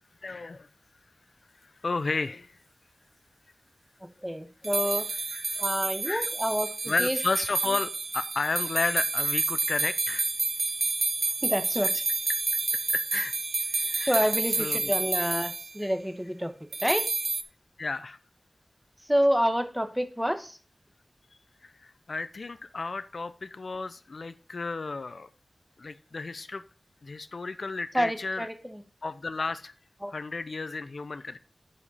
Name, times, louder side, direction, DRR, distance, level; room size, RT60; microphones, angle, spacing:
voice 1, 0.2-0.7 1.6-2.6 4.9-5.0 5.3-5.6 6.0-6.3 6.9-10.3 12.7-14.9 17.8-18.2 21.6-25.3 25.8-26.6 27.0-28.5 29.0-29.7 30.1-31.4, left 3 dB, 70° left, 14 dB, 0.5 m, -33 dB
voice 2, 4.2-5.1 5.6-6.7 7.0-7.2 11.4-11.9 14.1-16.5 16.8-17.1 19.1-20.6 27.9-28.5 30.0-30.1, equal, 5° right, 9 dB, 1.1 m, -27 dB
sound 1, 4.6-15.7 16.7-17.4, right 3 dB, 70° right, 0.7 m, -29 dB
11.0 x 5.1 x 4.0 m, 0.39 s
wide cardioid pair, 75°, 0 cm